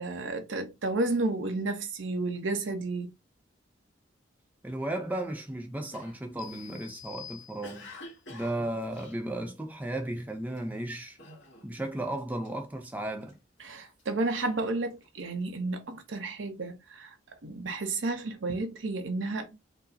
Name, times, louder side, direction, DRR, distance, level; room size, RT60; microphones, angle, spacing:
voice 1, 0.0-3.1 13.6-17.1 17.4-19.5, right 2 dB, 85° right, 0.7 m, -32 dB
voice 2, 4.6-7.9 8.3-11.2 11.6-13.4, right 1 dB, 10° right, 0.4 m, -35 dB
Cough, 5.9-10.0 10.5-10.8 11.2-11.9 12.2-13.3 13.9-15.4, left 1 dB, 85° left, 1.8 m, -49 dB
sound 1, 6.4-8.1, left 10 dB, 45° left, 0.6 m, -48 dB
4.5 x 2.0 x 2.6 m
head